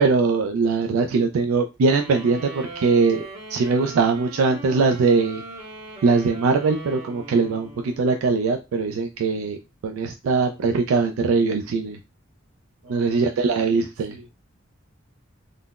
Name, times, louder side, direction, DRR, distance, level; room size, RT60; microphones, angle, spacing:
voice 1, 0.0-5.4 6.0-9.6 9.8-12.0 12.9-14.1, right 4 dB, 90° right, 4 dB, 0.3 m, -21 dB
sound 1, 1.8-8.2, right 1 dB, 50° right, 1.4 m, -40 dB
voice 2, 12.8-13.8 14.1-14.3, right 1 dB, 65° right, 1 dB, 0.9 m, -45 dB
3.7 x 2.0 x 2.3 m, 0.26 s
head